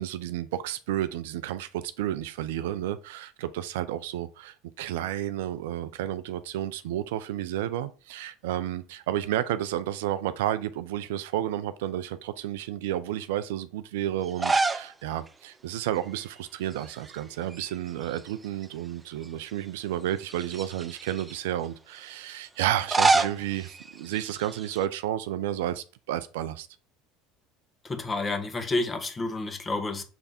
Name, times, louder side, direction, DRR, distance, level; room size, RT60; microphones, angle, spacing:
voice 1, 0.0-26.7, right 12 dB, 75° right, 0.5 m, -31 dB
sound 1, 14.3-14.9 15.3-15.4 16.7-17.2 17.5-18.7 19.2-19.3 20.2-21.4 22.6-24.8, right 3 dB, 20° right, 0.6 m, -28 dB
voice 2, 27.8-30.0, left 2 dB, 25° left, 1.5 m, -30 dB
6.8 x 3.4 x 4.2 m
hypercardioid pair, 75°, 0 cm